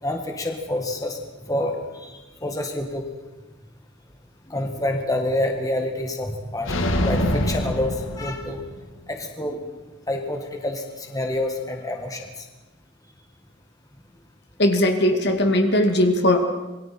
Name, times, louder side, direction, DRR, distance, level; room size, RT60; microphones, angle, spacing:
voice 1, 0.0-3.1 4.5-8.6 9.1-9.7 10.1-12.5, left 1 dB, 15° left, 3 dB, 1.8 m, -28 dB
sound 1, 6.7-8.8, left 1 dB, 75° left, 2.0 m, -25 dB
voice 2, 14.6-16.5, left 1 dB, 55° left, 5 dB, 2.2 m, -19 dB
27.0 x 22.0 x 4.4 m, 1.1 s
head